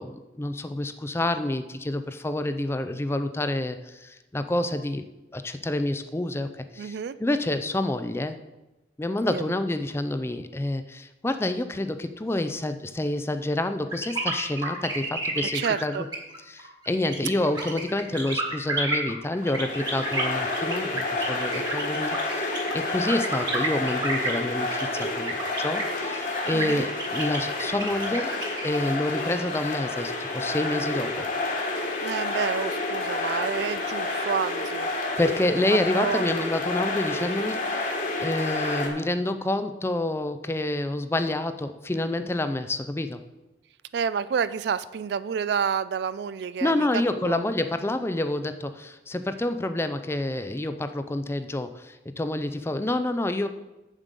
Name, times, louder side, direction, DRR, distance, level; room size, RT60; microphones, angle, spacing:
voice 1, 0.0-5.1 5.3-8.4 9.0-16.1 16.5-28.3 28.6-31.3 35.2-37.9 38.2-43.2 46.6-53.5, left 1 dB, 15° left, 9 dB, 0.4 m, -28 dB
voice 2, 6.8-7.2 9.2-9.5 15.5-16.1 26.5-26.9 32.0-34.9 36.0-36.2 43.9-47.4, right 7 dB, 65° right, 16 dB, 0.3 m, -29 dB
sound 1, 13.9-28.8, right 2 dB, 25° right, 1.5 m, -31 dB
sound 2, 19.4-38.9, left 2 dB, 45° left, 1.5 m, -29 dB
7.6 x 7.3 x 5.2 m, 1.1 s
head